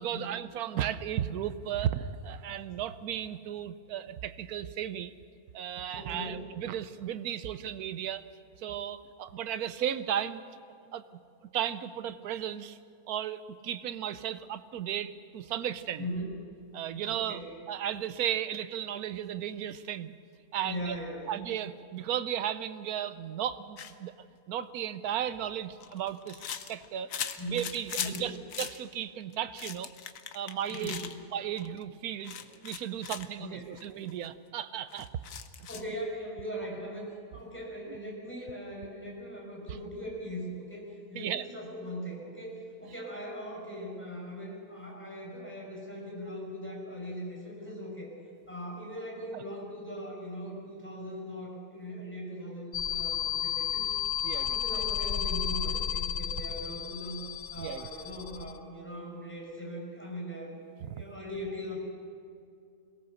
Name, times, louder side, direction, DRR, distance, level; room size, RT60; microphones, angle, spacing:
voice 1, 0.0-5.1 5.5-8.2 8.6-10.4 10.9-11.0 11.4-12.8 13.1-16.0 16.7-17.4 17.7-20.1 20.5-21.0 21.3-24.1 24.5-27.1 27.5-29.9 30.3-31.0 31.3-32.4 32.6-35.1 35.6-35.7 41.1-41.4 49.3-49.4 54.2-54.6 57.6-57.9 60.9-61.0, right 10 dB, 75° right, 13 dB, 1.2 m, -35 dB
voice 2, 5.9-6.4 16.0-16.3 17.1-17.5 20.6-21.3 27.4-27.7 28.0-28.3 30.7-31.1 33.4-33.8 35.7-48.1 48.5-54.0 54.3-57.3 57.5-61.8, equal, 5° left, -2 dB, 5.6 m, -40 dB
sound 1, 23.8-23.9 25.3-28.2 28.5-28.8 29.3-31.1 31.6-31.8 32.2-33.3 33.8-33.9 34.1-34.3 34.9-35.9, left 8 dB, 65° left, 1.2 m, -39 dB
sound 2, 52.7-58.6, left 9 dB, 85° left, 0.3 m, -32 dB
22.5 x 18.0 x 6.5 m, 2.4 s
omnidirectional pair, 1.6 m